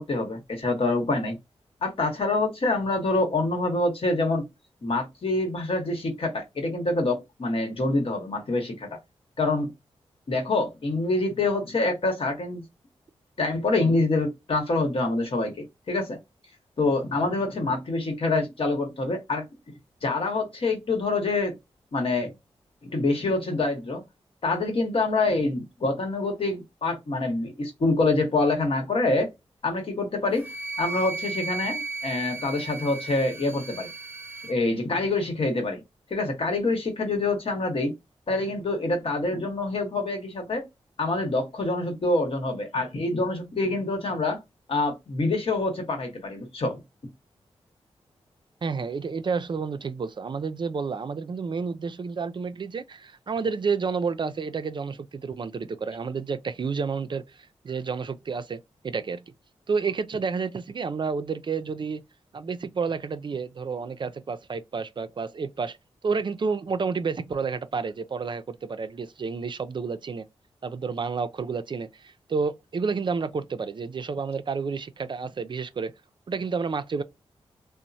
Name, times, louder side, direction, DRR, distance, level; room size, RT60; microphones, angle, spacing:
voice 1, 0.0-1.4 1.8-4.5 4.8-9.0 9.4-9.7 10.3-12.6 13.4-16.2 16.8-19.5 20.0-21.5 21.9-22.3 22.9-24.0 24.4-29.3 29.6-30.5 30.8-33.9 34.5-35.8 36.1-37.9 38.3-40.6 41.0-44.4 44.7-46.8, left 2 dB, 60° left, 1.0 m, -26 dB
Wind instrument woodwind instrument, 30.4-34.6, right 3 dB, 20° right, 0.8 m, -35 dB
voice 2, 48.6-59.2 59.7-62.0 62.3-65.8 66.0-70.2 70.6-75.9 76.3-77.0, right 5 dB, 45° right, 0.4 m, -30 dB
2.9 x 2.0 x 2.6 m
cardioid pair, 55°, 11 cm